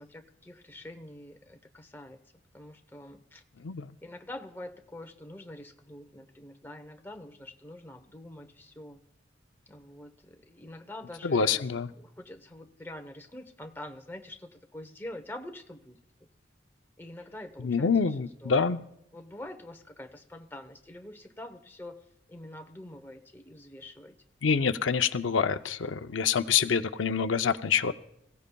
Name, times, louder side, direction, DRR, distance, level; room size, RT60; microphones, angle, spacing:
voice 1, 0.0-2.2 2.5-3.4 4.0-9.0 9.7-16.0 17.0-18.7 19.1-24.2, left 1 dB, 10° left, 5 dB, 0.9 m, -45 dB
voice 2, 11.2-11.9 17.6-18.8 24.4-27.9, left 6 dB, 85° left, 9 dB, 0.6 m, -26 dB
27.0 x 16.5 x 2.3 m, 0.77 s
head